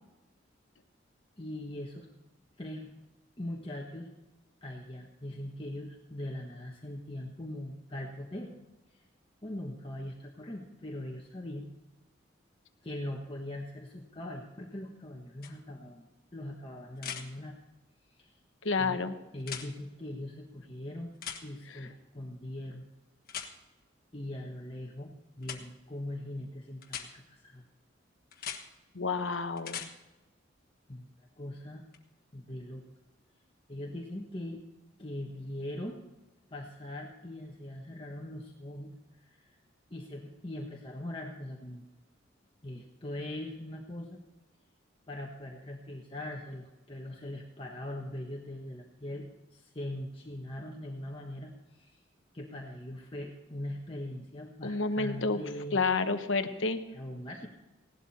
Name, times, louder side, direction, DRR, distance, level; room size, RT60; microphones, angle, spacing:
voice 1, 1.4-2.1 2.6-2.9 3.4-4.1 4.6-8.5 8.9-9.0 9.4-11.7 12.8-17.5 18.2-18.3 18.8-21.2 21.4-22.8 24.1-25.1 25.4-27.6 30.9-31.1 31.4-31.8 32.3-32.9 33.7-34.6 35.0-36.0 36.5-38.9 39.2-39.6 39.9-41.8 42.6-44.2 45.1-52.0 52.3-55.8 56.9-57.5, left 1 dB, 25° left, -1 dB, 1.3 m, -41 dB
sound 1, 15.4-15.5 17.0-17.2 19.4-19.7 21.2-21.4 23.3-23.5 25.4-25.6 26.8-27.1 28.3-28.6 29.6-29.9 31.9-32.0, left 8 dB, 50° left, 1.4 m, -39 dB
voice 2, 18.6-19.1 28.9-29.9 54.6-55.4 55.7-56.8, left 4 dB, 85° left, 9 dB, 1.1 m, -29 dB
17.0 x 12.0 x 4.2 m, 1.0 s
head